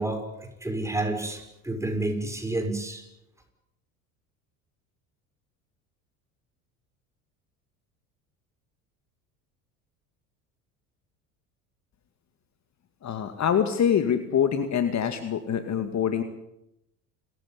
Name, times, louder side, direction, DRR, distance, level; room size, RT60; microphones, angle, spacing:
voice 1, 0.0-3.0, right 2 dB, 5° right, 4 dB, 6.3 m, -30 dB
voice 2, 13.0-16.2, left 8 dB, 40° left, 9 dB, 2.3 m, -25 dB
28.5 x 15.0 x 9.6 m, 0.86 s
hypercardioid pair, 75°, 43 cm